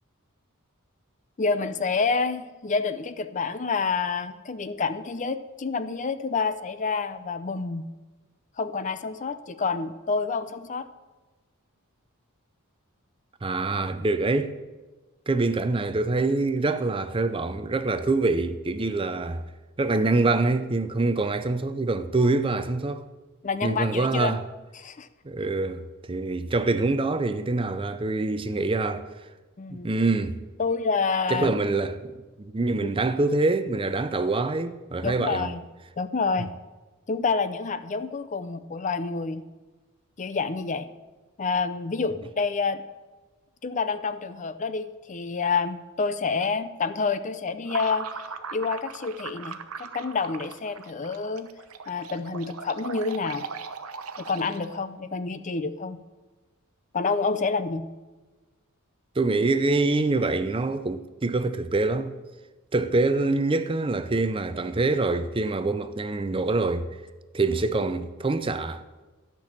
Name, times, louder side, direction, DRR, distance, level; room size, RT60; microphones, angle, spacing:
voice 1, 1.4-7.9 8.6-10.9 23.4-24.3 24.7-25.1 29.6-29.9 30.6-31.6 32.8-32.9 35.0-35.6 36.0-36.5 37.1-39.4 40.2-40.9 41.4-42.8 43.6-48.1 48.5-51.5 51.9-53.5 54.2-56.0 56.9-57.9, left 4 dB, 35° left, 0.5 m, -28 dB
voice 2, 13.4-14.5 15.3-19.4 19.8-23.1 23.6-24.4 25.2-29.1 29.7-30.4 31.3-35.5 59.2-62.1 62.7-66.9 67.3-68.8, right 3 dB, 25° right, 0.5 m, -25 dB
sound 1, 47.7-54.9, right 5 dB, 80° right, 0.8 m, -39 dB
13.5 x 6.1 x 8.7 m
head